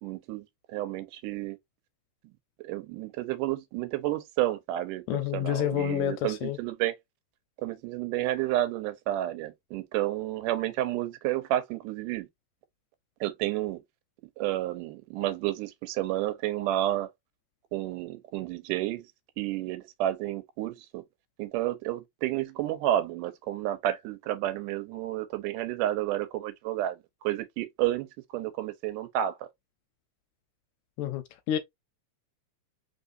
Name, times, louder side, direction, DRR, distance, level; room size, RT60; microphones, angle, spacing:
voice 1, 0.0-1.6 2.6-6.9 7.6-12.3 13.2-13.8 14.4-17.1 17.7-19.1 19.4-21.0 21.4-29.5, right 14 dB, 90° right, 2.2 m, -31 dB
voice 2, 5.1-6.6 31.0-31.6, left 12 dB, 80° left, 1.8 m, -29 dB
4.2 x 3.5 x 2.5 m
omnidirectional pair, 3.6 m